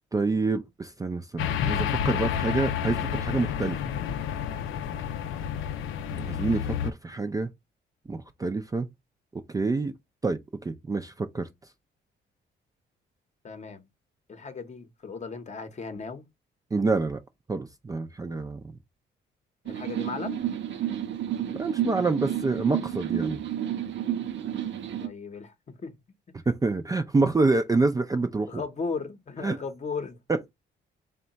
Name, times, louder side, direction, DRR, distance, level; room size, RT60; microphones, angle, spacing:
voice 1, 0.1-3.8 6.1-7.5 8.1-8.9 9.3-9.9 10.2-11.5 16.7-17.2 17.5-18.6 21.6-23.4 26.5-28.6 29.4-29.6, right 3 dB, 20° right, 0.4 m, -27 dB
sound 1, 1.4-6.9, left 9 dB, 90° left, 0.5 m, -30 dB
voice 2, 13.4-13.9 14.3-16.2 19.6-20.4 25.0-25.9 28.5-30.2, left 4 dB, 35° left, 0.8 m, -36 dB
sound 2, 19.7-25.1, right 10 dB, 70° right, 0.6 m, -31 dB
3.6 x 2.2 x 4.0 m
cardioid pair, 90°, 20 cm